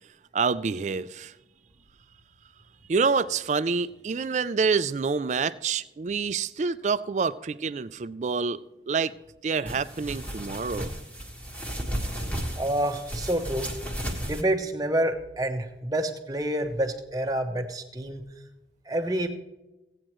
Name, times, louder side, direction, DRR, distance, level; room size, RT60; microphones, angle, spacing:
voice 1, 0.3-1.3 2.9-8.6 8.9-9.1 9.4-10.9, right 5 dB, 40° right, 0.4 m, -27 dB
sound 1, 9.7-14.4, equal, 10° left, 1.5 m, -34 dB
voice 2, 12.5-13.7 14.2-18.2 18.9-19.3, right 1 dB, 20° right, 0.9 m, -28 dB
16.5 x 8.8 x 3.1 m
head